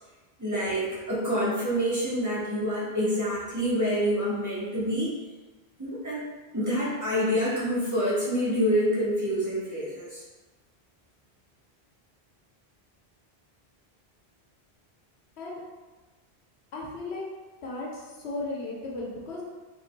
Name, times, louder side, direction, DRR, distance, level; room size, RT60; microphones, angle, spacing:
voice 1, 0.4-5.2 5.8-6.2 6.5-10.2, equal, 15° right, -8 dB, 1.3 m, -27 dB
voice 2, 16.7-17.2 17.6-19.4, left 2 dB, 85° left, -4 dB, 1.2 m, -35 dB
5.0 x 3.7 x 2.3 m, 1.3 s
omnidirectional pair, 1.1 m